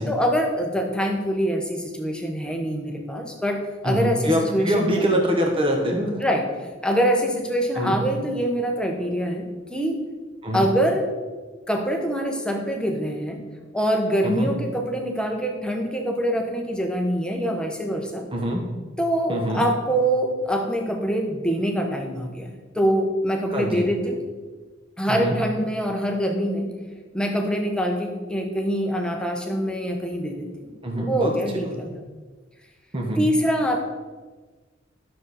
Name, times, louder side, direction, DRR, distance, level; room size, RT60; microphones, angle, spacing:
voice 1, 0.1-5.0 6.2-6.5 6.8-10.0 10.5-11.1 11.7-13.4 13.7-18.3 19.0-24.2 25.0-26.7 27.1-31.9 33.2-33.8, equal, 5° left, 2 dB, 0.9 m, -24 dB
voice 2, 3.8-6.2 7.7-8.0 10.4-10.7 14.2-14.5 18.3-18.6 19.3-19.7 23.5-23.8 25.1-25.4 30.8-31.3 31.6-31.9 32.9-33.2, equal, 25° right, 1 dB, 1.1 m, -24 dB
11.5 x 6.5 x 4.2 m, 1.3 s
head